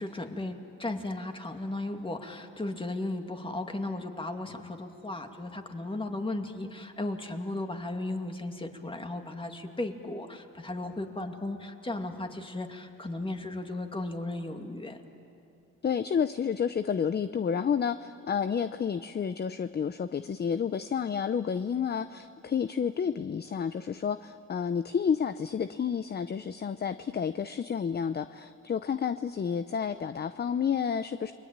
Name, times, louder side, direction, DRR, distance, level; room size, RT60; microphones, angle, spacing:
voice 1, 0.0-15.0, left 2 dB, 15° left, 5 dB, 2.4 m, -35 dB
voice 2, 15.8-31.3, left 7 dB, 35° left, 12 dB, 0.7 m, -30 dB
30.0 x 22.5 x 8.9 m, 2.7 s
cardioid pair, 90°, 30 cm